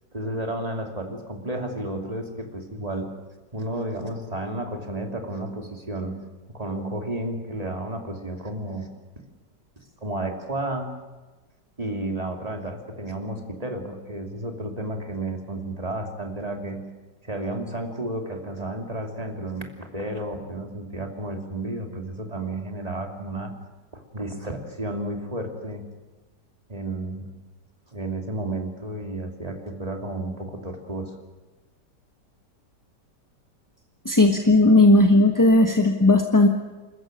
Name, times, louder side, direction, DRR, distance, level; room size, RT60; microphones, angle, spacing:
voice 1, 0.1-3.1 3.5-6.2 6.5-8.9 10.0-10.9 11.8-16.8 17.2-23.5 23.9-25.8 26.7-27.3 27.9-31.1, right 1 dB, 20° right, 2 dB, 2.9 m, -32 dB
voice 2, 34.0-36.5, left 2 dB, 15° left, 3 dB, 1.1 m, -16 dB
27.0 x 14.5 x 9.1 m, 1.2 s
omnidirectional pair, 1.9 m